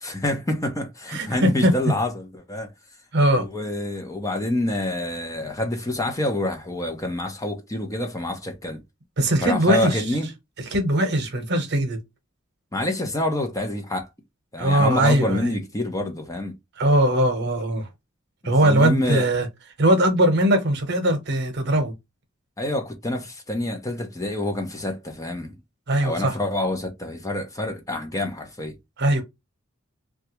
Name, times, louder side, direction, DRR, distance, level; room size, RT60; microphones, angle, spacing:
voice 1, 0.0-2.7 3.4-8.8 9.4-10.3 12.7-14.1 14.5-16.5 18.4-19.3 22.6-25.5 26.0-28.7, left 1 dB, 15° left, 0.7 m, -27 dB
voice 2, 1.1-1.7 3.1-3.5 9.2-10.0 10.6-12.0 14.6-15.5 16.8-17.9 18.4-19.5 19.8-21.9 25.9-26.4 29.0-29.2, right 1 dB, 55° right, 0.9 m, -20 dB
3.2 x 2.4 x 3.0 m
head